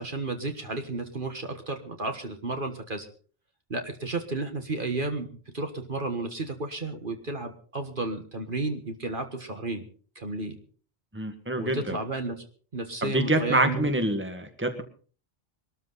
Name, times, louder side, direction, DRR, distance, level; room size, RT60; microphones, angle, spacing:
voice 1, 0.0-3.1 3.7-9.9 10.2-10.6 11.6-12.4 12.7-13.9, right 2 dB, 50° right, 6 dB, 1.7 m, -32 dB
voice 2, 11.1-12.0 13.0-14.8, right 1 dB, 10° right, 7 dB, 1.7 m, -26 dB
21.5 x 13.5 x 4.1 m, 0.42 s
omnidirectional pair, 1.2 m